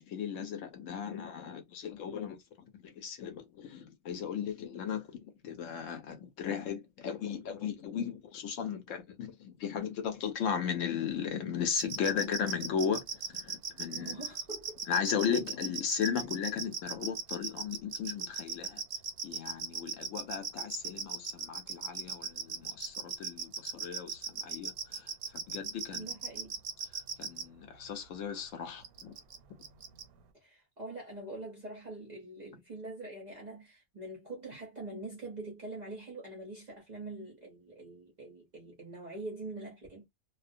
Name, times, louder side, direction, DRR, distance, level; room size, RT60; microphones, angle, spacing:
voice 1, 0.0-2.4 2.8-13.0 13.3-14.2 14.9-18.8 19.2-25.1 25.5-26.2 27.2-29.1, left 7 dB, 70° left, 0.9 m, -36 dB
sound 1, 11.8-27.4 28.8-29.4 29.6-30.0, right 6 dB, 90° right, 1.0 m, -37 dB
voice 2, 13.9-14.8 25.9-26.5 30.4-40.1, right 2 dB, 50° right, 0.5 m, -44 dB
2.4 x 2.1 x 2.5 m
omnidirectional pair, 1.5 m